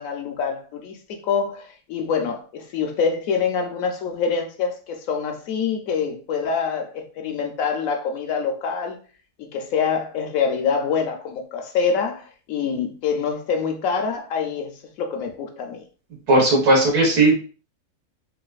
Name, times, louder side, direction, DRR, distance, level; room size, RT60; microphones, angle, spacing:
voice 1, 0.0-9.0 9.4-15.8, left 6 dB, 70° left, 0.9 m, -25 dB
voice 2, 16.3-17.3, right 2 dB, 90° right, 1.9 m, -16 dB
3.9 x 2.3 x 2.3 m
omnidirectional pair, 1.6 m